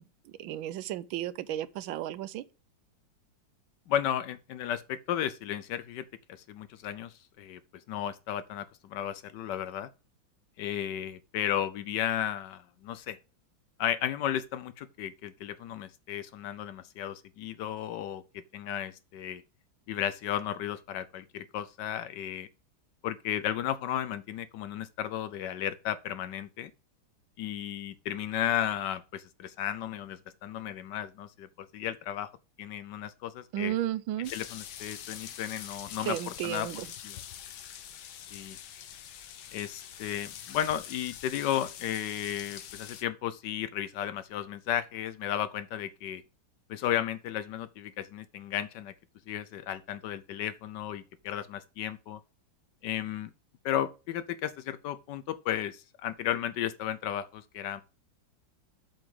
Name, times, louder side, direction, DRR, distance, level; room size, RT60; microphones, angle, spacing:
voice 1, 0.0-2.4 33.5-34.3 36.0-36.9, right 12 dB, 85° right, 1.4 m, -34 dB
voice 2, 3.9-7.6 7.9-9.9 10.6-13.2 13.8-19.4 19.9-22.5 23.0-26.7 27.4-31.5 31.7-32.3 32.6-33.7 34.3-36.2 36.4-36.7 37.0-37.2 38.3-38.6 39.5-46.2 46.7-48.9 49.3-52.2 52.8-53.3 53.6-57.8, left 10 dB, 70° left, 1.1 m, -34 dB
sound 1, 34.2-43.0, left 10 dB, 90° left, 1.7 m, -44 dB
7.6 x 7.4 x 3.6 m
omnidirectional pair, 2.2 m